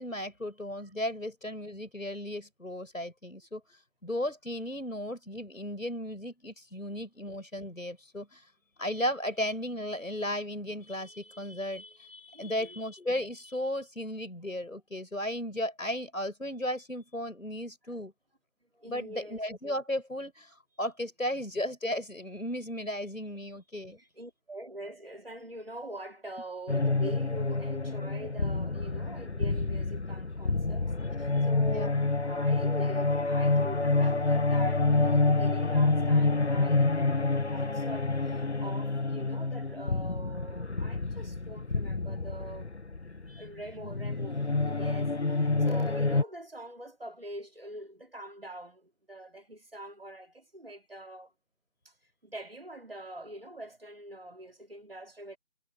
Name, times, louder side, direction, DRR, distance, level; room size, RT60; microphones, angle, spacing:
voice 1, 0.0-3.6 4.0-8.4 8.8-18.1 18.9-24.0 31.4-31.9 43.3-43.4, left 1 dB, 75° left, 6.9 m, -35 dB
voice 2, 12.3-12.8 18.7-19.4 23.7-30.9 31.2-42.7 43.4-51.3 51.8-51.9 52.2-55.4, right 1 dB, 45° right, 3.0 m, -44 dB
sound 1, 26.7-46.2, left 3 dB, 55° left, 0.7 m, -28 dB
figure-of-eight pair, 170°, 40 cm